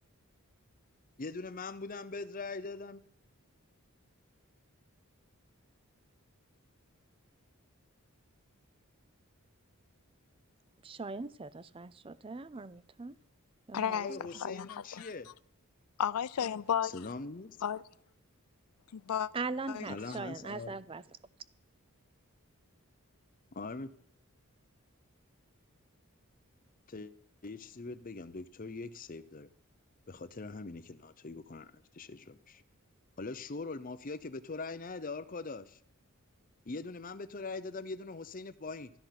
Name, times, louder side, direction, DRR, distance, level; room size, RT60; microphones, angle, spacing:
voice 1, 1.2-3.0 13.9-15.3 16.8-17.6 19.9-20.7 23.5-23.9 26.9-27.1 27.4-29.5 30.1-32.6 33.2-35.8 36.7-38.9, left 3 dB, 40° left, 0.7 m, -42 dB
voice 2, 10.8-13.2 13.7-14.2 19.3-21.0, right 3 dB, 25° right, 0.4 m, -40 dB
voice 3, 13.7-15.1 16.0-17.1 17.6-17.8 18.9-19.3 19.7-19.9, left 8 dB, 90° left, 0.5 m, -33 dB
13.0 x 11.5 x 5.9 m
head